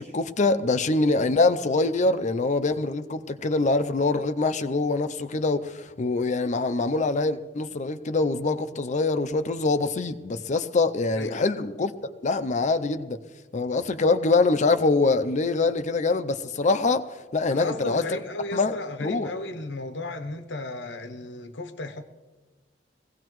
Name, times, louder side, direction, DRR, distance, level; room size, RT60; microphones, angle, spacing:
voice 1, 0.0-11.9 12.2-13.2 13.5-17.0 17.3-18.0 18.5-18.7 19.0-19.3, left 3 dB, 40° left, 0.5 m, -24 dB
voice 2, 17.5-22.0, left 2 dB, 80° left, 0.9 m, -34 dB
21.5 x 16.5 x 3.1 m
head